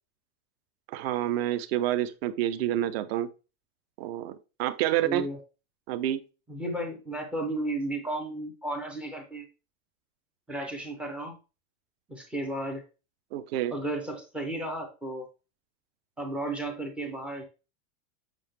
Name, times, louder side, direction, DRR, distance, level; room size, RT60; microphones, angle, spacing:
voice 1, 0.9-3.3 4.0-5.3 5.9-6.2 13.3-13.7, right 12 dB, 45° right, 13 dB, 0.7 m, -28 dB
voice 2, 5.0-5.4 6.5-9.5 10.5-11.3 12.1-12.8 13.7-15.3 16.2-17.4, right 1 dB, 5° right, 3 dB, 0.4 m, -33 dB
7.8 x 5.7 x 3.3 m, 0.31 s
supercardioid pair, 180°, 42 cm